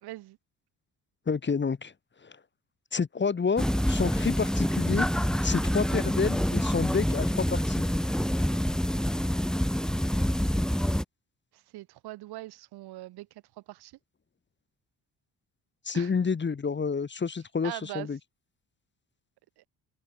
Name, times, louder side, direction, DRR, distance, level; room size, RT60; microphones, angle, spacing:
voice 1, 0.0-0.4 11.5-13.9 15.9-16.1 17.6-18.1 19.6-19.7, right 17 dB, 90° right, 3.8 m, -42 dB
voice 2, 1.3-1.9 2.2-2.4 2.9-5.1 5.4-7.8 15.8-18.2, left 5 dB, 30° left, 1.3 m, -29 dB
sound 1, 3.6-11.0, equal, ahead, 2.2 m, -27 dB
cardioid pair, 75°, 38 cm